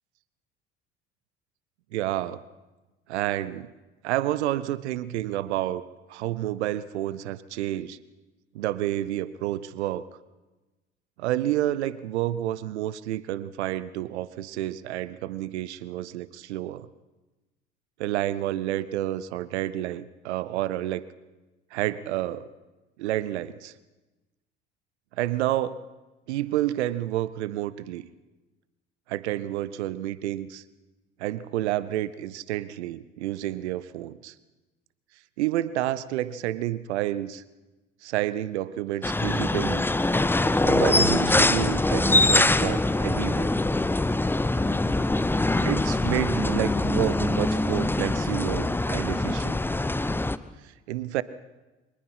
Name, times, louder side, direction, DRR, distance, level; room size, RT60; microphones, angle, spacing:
voice 1, 1.9-2.4 3.1-3.7 4.0-5.8 6.1-8.0 8.5-10.0 11.2-16.9 18.0-21.0 21.7-22.5 23.0-23.7 25.2-25.8 26.3-28.1 29.1-30.6 31.2-34.3 35.4-37.4 38.0-39.9 40.6-43.6 45.6-49.6 50.6-51.2, right 14 dB, 65° right, 17 dB, 0.9 m, -29 dB
sound 1, 39.0-50.4, left 2 dB, 5° left, 0.7 m, -23 dB
24.0 x 19.0 x 5.7 m, 1.1 s
figure-of-eight pair, 60°, 36 cm